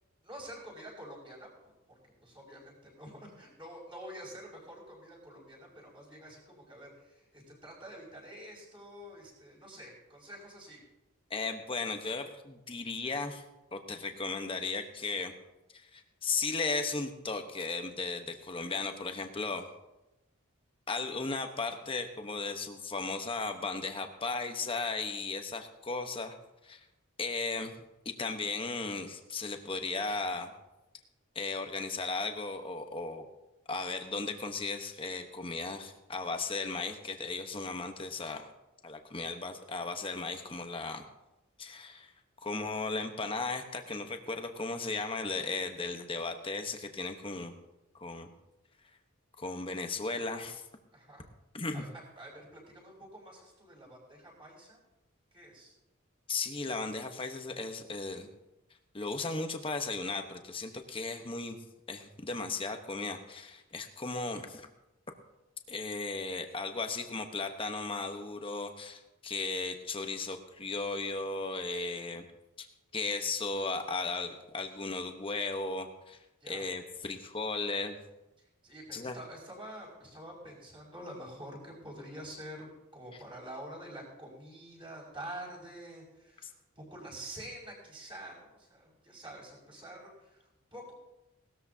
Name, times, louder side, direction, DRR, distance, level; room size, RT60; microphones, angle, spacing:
voice 1, 0.2-1.7 2.2-10.8 50.9-51.2 51.7-54.8 55.3-55.7 76.4-76.7 78.4-91.0, right 1 dB, 25° right, -4 dB, 5.6 m, -47 dB
voice 2, 11.3-13.4 13.7-15.3 15.7-19.7 20.9-26.4 26.6-26.8 27.2-27.7 28.0-30.5 31.3-33.3 33.7-38.5 38.8-41.0 41.6-42.1 42.4-47.5 48.0-48.3 49.4-50.6 51.5-51.8 56.3-58.3 58.9-61.6 61.9-64.7 65.7-72.2 72.6-72.7 72.9-76.2 76.5-78.0 78.9-79.2 86.4-86.5, left 3 dB, 25° left, 6 dB, 1.1 m, -36 dB
19.0 x 13.5 x 2.8 m, 0.96 s
head